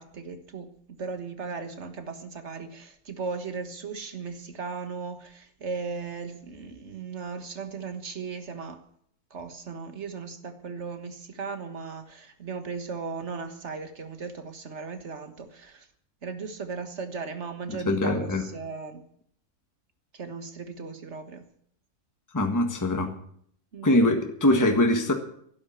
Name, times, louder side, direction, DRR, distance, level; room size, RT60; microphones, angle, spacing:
voice 1, 0.0-8.8 9.3-15.9 16.2-19.0 20.1-21.5 23.7-24.1, right 4 dB, 50° right, 8 dB, 1.7 m, -37 dB
voice 2, 17.8-18.4 22.3-23.1 23.8-25.1, left 1 dB, 10° left, 4 dB, 1.5 m, -22 dB
12.0 x 10.5 x 8.7 m, 0.66 s
omnidirectional pair, 1.6 m